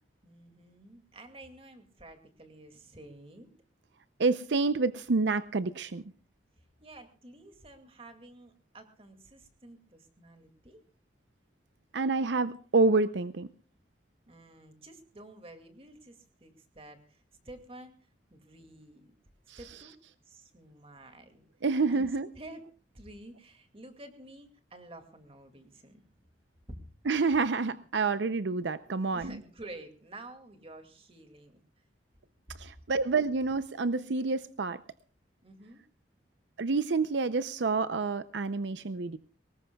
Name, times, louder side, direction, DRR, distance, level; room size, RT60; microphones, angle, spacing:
voice 1, 0.2-3.5 6.8-10.8 14.3-17.9 18.3-19.1 19.6-20.0 20.2-21.4 21.9-22.1 22.3-22.6 22.9-26.1 26.7-26.8 29.1-31.6 35.4-35.8, right 1 dB, 30° right, 6 dB, 2.3 m, -50 dB
voice 2, 4.2-6.0 11.9-13.5 19.5-19.6 21.6-22.3 27.1-29.4 32.6-34.8 36.6-39.2, right 3 dB, 80° right, 13 dB, 0.6 m, -28 dB
23.0 x 19.5 x 2.3 m, 0.38 s
head